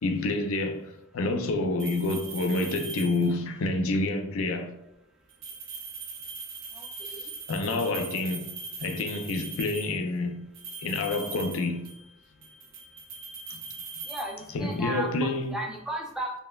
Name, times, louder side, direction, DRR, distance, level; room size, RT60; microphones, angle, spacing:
voice 1, 0.0-4.7 7.5-8.4 8.8-10.5 10.8-11.9 13.5-13.6 14.5-15.5, left 2 dB, 80° left, 0.4 m, -28 dB
sound 1, 1.8-3.5 5.3-10.0 10.5-12.1 12.4-14.9, right 4 dB, 65° right, 0.6 m, -40 dB
voice 2, 6.7-7.2 14.1-16.3, right 1 dB, 5° right, 0.4 m, -35 dB
5.2 x 2.1 x 2.3 m
head